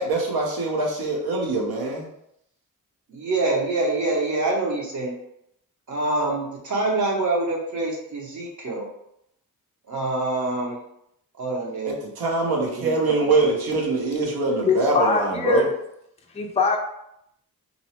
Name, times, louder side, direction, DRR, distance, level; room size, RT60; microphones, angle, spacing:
voice 1, 0.0-2.1 11.9-15.7, right 3 dB, 85° right, -1 dB, 0.8 m, -23 dB
voice 2, 3.1-5.1 5.9-8.9 9.9-10.8 11.4-11.9 12.7-13.4, right 2 dB, 55° right, -2 dB, 0.8 m, -26 dB
voice 3, 14.7-15.7 16.3-16.8, left 4 dB, 20° left, 1 dB, 0.4 m, -21 dB
2.6 x 2.0 x 2.8 m, 0.77 s
wide cardioid pair, 90°, 36 cm